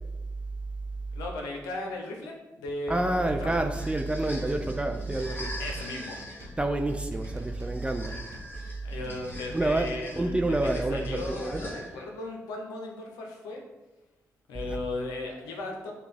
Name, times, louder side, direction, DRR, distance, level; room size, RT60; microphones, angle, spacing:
voice 1, 1.1-3.6 5.6-6.2 8.8-10.6 10.9-13.6 14.5-15.9, left 2 dB, 90° left, 0 dB, 0.7 m, -36 dB
voice 2, 2.9-5.6 6.6-8.2 9.5-9.9 10.2-11.6 14.7-14.8, right 2 dB, 15° right, 5 dB, 0.4 m, -28 dB
sound 1, 3.3-4.0 4.2-4.7 5.2-5.9 6.2-6.6 7.1-7.8 8.1-8.6 9.0-9.9, right 1 dB, 65° right, 0.8 m, -46 dB
sound 2, 3.5-12.2, left 1 dB, 30° left, 1.4 m, -43 dB
6.6 x 2.4 x 3.4 m, 1.1 s
supercardioid pair, 45°, 6 cm